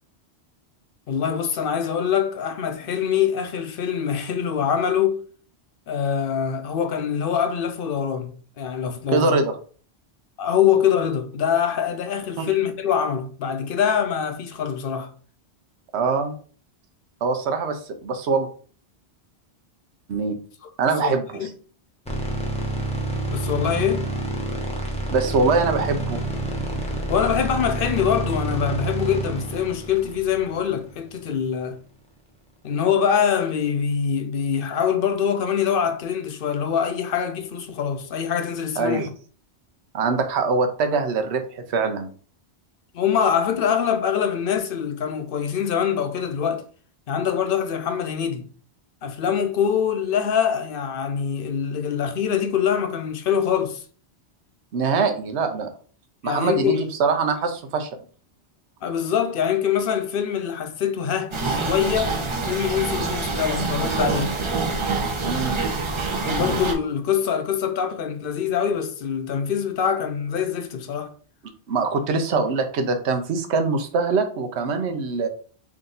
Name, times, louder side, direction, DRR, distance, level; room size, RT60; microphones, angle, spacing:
voice 1, 1.1-5.2 5.9-9.4 10.4-15.1 21.0-21.5 23.3-24.1 27.1-31.8 32.6-39.0 42.9-46.6 47.1-48.5 49.0-53.8 56.2-56.8 58.8-62.2 62.5-64.3 66.2-71.1, left 8 dB, 60° left, 0.7 m, -24 dB
voice 2, 9.1-9.5 12.4-12.5 15.9-16.3 17.2-18.5 20.1-20.4 20.8-21.5 25.1-26.2 38.8-39.1 39.9-42.1 54.7-55.7 56.2-57.9 65.2-65.6 71.7-75.3, right 4 dB, 80° right, 1.0 m, -23 dB
sound 1, 22.0-31.2, right 2 dB, 5° left, 0.7 m, -28 dB
sound 2, 61.3-66.7, right 3 dB, 35° right, 0.6 m, -26 dB
3.6 x 2.7 x 3.8 m
omnidirectional pair, 1.1 m